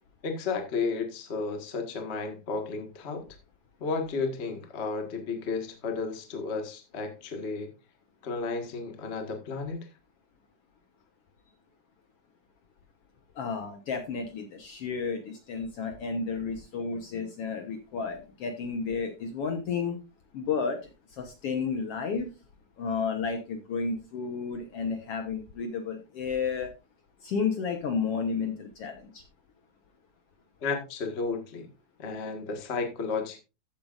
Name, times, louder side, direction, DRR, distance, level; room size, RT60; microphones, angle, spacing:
voice 1, 0.2-3.2 3.8-7.7 8.2-9.9 30.6-31.7 32.0-33.4, left 4 dB, 30° left, 5 dB, 1.4 m, -33 dB
voice 2, 13.4-20.0 20.3-20.8 21.2-22.3 22.8-26.7 27.2-29.2, left 5 dB, 60° left, 5 dB, 1.8 m, -32 dB
14.0 x 8.5 x 2.5 m, 0.28 s
omnidirectional pair, 3.5 m